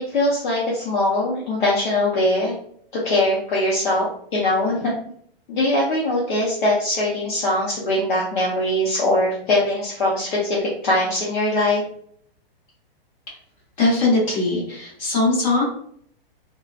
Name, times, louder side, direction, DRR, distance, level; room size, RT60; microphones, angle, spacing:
voice 1, 0.1-2.6 3.0-4.1 4.3-4.9 5.5-11.8, left 1 dB, 55° left, -5 dB, 0.8 m, -21 dB
voice 2, 13.8-15.6, left 2 dB, 35° left, -5 dB, 1.3 m, -20 dB
2.7 x 2.2 x 2.4 m, 0.64 s
hypercardioid pair, 170°, 30 cm